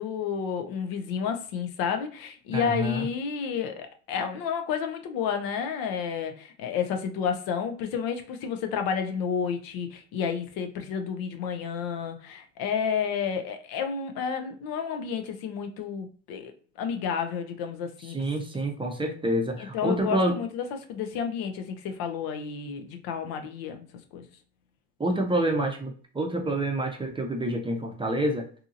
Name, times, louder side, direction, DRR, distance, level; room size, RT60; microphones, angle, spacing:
voice 1, 0.0-18.2 19.6-23.9 24.1-24.3, left 7 dB, 70° left, 0.7 m, -31 dB
voice 2, 2.5-3.1 18.1-20.4 25.0-28.5, right 1 dB, 15° right, 0.6 m, -27 dB
2.8 x 2.7 x 2.4 m
supercardioid pair, 85°, 37 cm